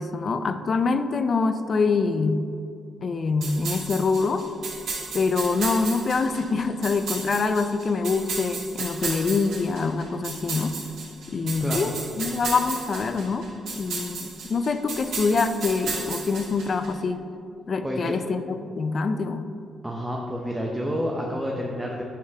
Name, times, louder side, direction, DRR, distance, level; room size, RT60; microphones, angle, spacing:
voice 1, 0.0-2.5 3.0-4.5 5.1-10.8 11.3-13.5 13.7-17.2 17.7-19.4, left 4 dB, 45° left, 9 dB, 0.4 m, -25 dB
sound 1, 3.4-16.9, right 4 dB, 70° right, 1.4 m, -34 dB
voice 2, 17.8-18.2 19.8-22.0, equal, 10° right, -1 dB, 0.6 m, -29 dB
9.6 x 3.6 x 2.8 m, 2.4 s
cardioid pair, 90°, 0 cm